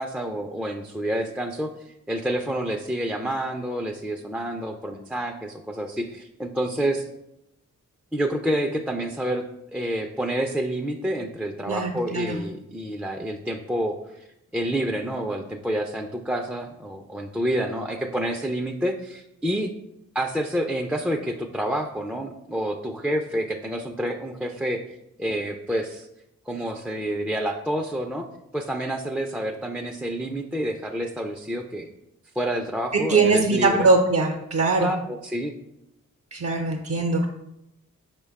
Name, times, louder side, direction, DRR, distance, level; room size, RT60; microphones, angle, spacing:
voice 1, 0.0-7.1 8.1-9.4 9.7-14.3 14.5-19.7 20.1-24.8 25.2-26.1 26.5-28.3 28.5-31.9 32.4-33.9 34.8-35.5, right 1 dB, 5° right, 2 dB, 0.4 m, -28 dB
voice 2, 11.7-12.3 33.1-34.9 36.3-37.3, right 3 dB, 55° right, 1 dB, 0.7 m, -21 dB
4.9 x 2.2 x 4.7 m, 0.84 s
cardioid pair, 45°, 35 cm